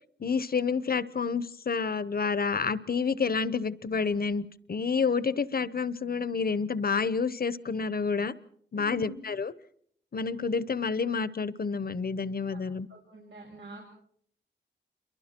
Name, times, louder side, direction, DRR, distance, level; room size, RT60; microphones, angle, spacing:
voice 1, 0.2-8.3 8.7-9.5 10.1-12.9, left 5 dB, 50° left, 17 dB, 0.9 m, -29 dB
voice 2, 8.7-9.2 12.5-12.6 12.9-13.8, right 2 dB, 85° right, -3 dB, 6.6 m, -46 dB
28.5 x 23.5 x 4.5 m, 0.65 s
wide cardioid pair, 85°, 20 cm